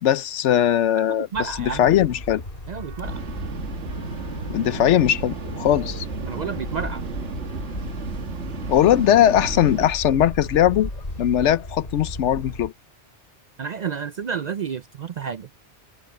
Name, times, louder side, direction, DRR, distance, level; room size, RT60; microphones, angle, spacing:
voice 1, 0.0-1.3 1.6-2.4 4.5-6.1 8.7-10.9 11.2-12.7, left 11 dB, 85° left, 1.0 m, -19 dB
voice 2, 1.1-1.9 2.7-3.2 6.2-7.0 13.6-15.5, right 6 dB, 55° right, 0.5 m, -30 dB
sound 1, 1.3-12.7, left 1 dB, 50° left, 5.2 m, -36 dB
Wind instrument woodwind instrument, 2.7-11.3, right 2 dB, 30° right, 3.8 m, -50 dB
sound 2, 3.0-9.9, right 5 dB, 80° right, 1.7 m, -33 dB
omnidirectional pair, 1.2 m